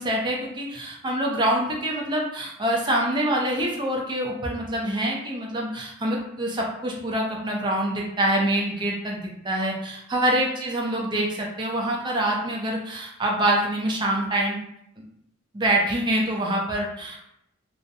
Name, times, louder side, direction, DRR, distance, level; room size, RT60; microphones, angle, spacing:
voice 1, 0.0-14.6 15.5-17.2, right 1 dB, 20° right, -1 dB, 0.4 m, -25 dB
2.5 x 2.1 x 2.6 m, 0.77 s
head